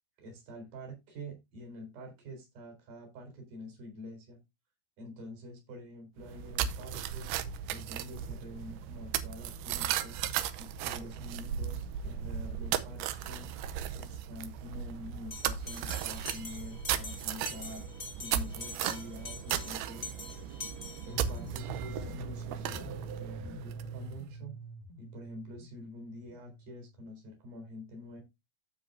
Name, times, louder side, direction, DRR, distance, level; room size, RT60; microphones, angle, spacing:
voice 1, 0.2-4.4 5.0-7.3 7.7-10.2 10.6-13.5 14.0-17.8 18.2-20.1 20.4-20.5 21.1-24.6 25.0-28.2, left 1 dB, 65° right, 4 dB, 5.6 m, -46 dB
sound 1, 6.2-24.1, right 10 dB, 85° right, 2.7 m, -36 dB
Bell, 15.3-21.5, left 3 dB, 55° left, 0.7 m, -45 dB
sound 2, 21.1-27.1, right 2 dB, 75° left, 2.5 m, -45 dB
14.5 x 5.0 x 2.6 m, 0.22 s
omnidirectional pair, 4.4 m